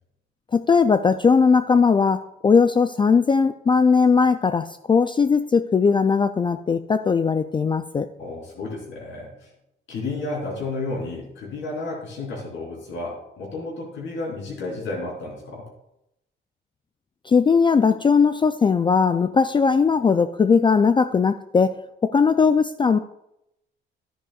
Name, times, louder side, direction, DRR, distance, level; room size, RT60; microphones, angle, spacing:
voice 1, 0.5-8.1 17.3-21.7 22.0-23.0, left 5 dB, 25° left, 10 dB, 0.3 m, -19 dB
voice 2, 8.2-9.5 9.9-15.7, left 2 dB, 75° left, -3 dB, 3.9 m, -32 dB
11.0 x 10.0 x 2.4 m, 0.82 s
cardioid pair, 90°, 20 cm